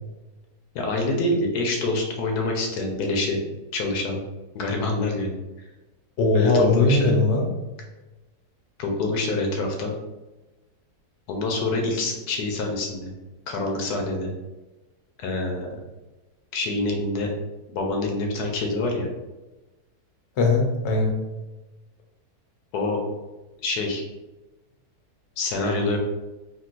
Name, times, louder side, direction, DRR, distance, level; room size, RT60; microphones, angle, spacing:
voice 1, 0.7-3.4 3.7-4.2 4.5-5.4 6.3-7.1 8.8-9.9 11.3-13.1 13.5-14.3 15.2-15.7 16.5-17.3 17.7-19.1 22.7-23.0 23.6-24.0 25.4-26.0, left 2 dB, 80° left, 1 dB, 1.1 m, -26 dB
voice 2, 6.2-7.5 20.4-21.1, left 2 dB, 60° left, 1 dB, 0.7 m, -20 dB
3.7 x 2.3 x 2.4 m, 1.1 s
omnidirectional pair, 1.7 m